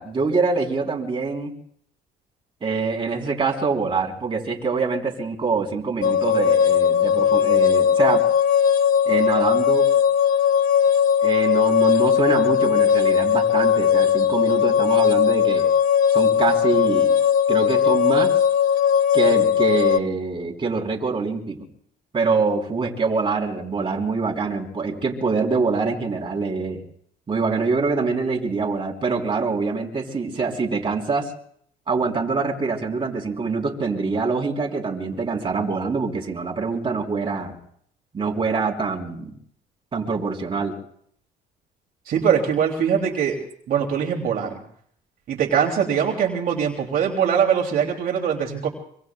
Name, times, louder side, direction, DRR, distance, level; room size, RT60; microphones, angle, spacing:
voice 1, 0.0-1.5 2.6-8.3 9.1-9.9 11.2-15.7 16.1-17.2 17.5-18.3 19.1-21.7 22.1-26.8 27.3-31.3 31.9-37.5 38.1-39.3 39.9-40.7, right 4 dB, 30° right, 0 dB, 3.5 m, -24 dB
sound 1, 6.0-20.0, left 8 dB, 55° left, 0.6 m, -18 dB
voice 2, 42.1-43.4 43.7-44.6 45.3-48.7, right 8 dB, 60° right, 1 dB, 2.7 m, -22 dB
25.5 x 25.0 x 2.3 m, 0.63 s
cardioid pair, 110°, 17 cm